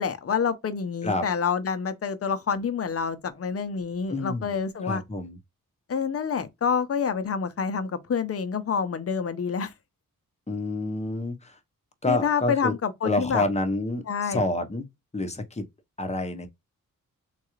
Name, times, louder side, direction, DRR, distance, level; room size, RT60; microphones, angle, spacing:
voice 1, 0.0-5.0 5.9-9.7 12.1-13.4 14.1-14.4, left 6 dB, 45° left, 0.7 m, -27 dB
voice 2, 4.1-4.5 4.8-5.4 10.5-11.6 12.0-12.7 13.0-14.8 15.1-15.6 16.0-16.5, left 2 dB, 20° left, 0.9 m, -28 dB
3.8 x 2.4 x 3.0 m
wide cardioid pair, 110°, 33 cm